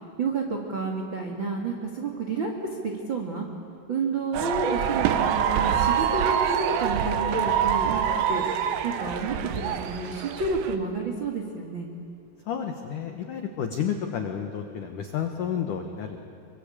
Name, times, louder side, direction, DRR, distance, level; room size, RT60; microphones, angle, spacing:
voice 1, 0.2-3.5 3.9-8.4 8.8-11.9, right 3 dB, 65° right, 1 dB, 1.2 m, -30 dB
sound 1, 4.3-10.8, right 9 dB, 85° right, 3.7 m, -25 dB
voice 2, 12.5-16.2, left 8 dB, 85° left, 5 dB, 1.8 m, -31 dB
24.5 x 24.0 x 8.6 m, 2.4 s
omnidirectional pair, 5.6 m